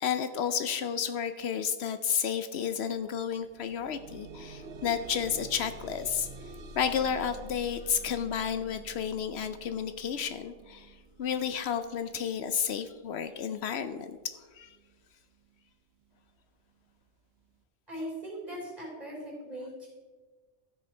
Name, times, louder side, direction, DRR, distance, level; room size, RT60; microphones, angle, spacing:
voice 1, 0.0-6.3 6.8-14.2 14.5-14.8, left 7 dB, 70° left, 10 dB, 0.8 m, -31 dB
sound 1, 2.7-2.8 3.2-14.2 15.0-15.1 15.6-15.7, right 2 dB, 65° right, 1.0 m, -48 dB
voice 2, 17.9-19.9, equal, 35° right, -3 dB, 3.8 m, -39 dB
14.0 x 6.4 x 4.4 m, 1.4 s
omnidirectional pair, 1.1 m